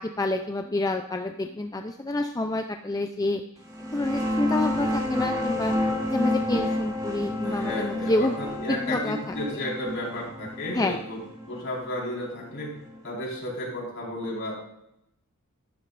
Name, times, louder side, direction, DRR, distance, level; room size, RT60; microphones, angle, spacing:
voice 1, 0.0-3.4 3.8-5.7 6.1-8.4 8.7-9.3 10.7-11.0, left 2 dB, 15° left, 5 dB, 0.5 m, -28 dB
sound 1, 3.7-13.0, left 1 dB, 15° right, 1.7 m, -30 dB
voice 2, 7.4-11.2 11.5-12.7 13.0-14.5, left 1 dB, 60° left, -4 dB, 4.7 m, -33 dB
12.0 x 11.5 x 2.6 m, 0.81 s
head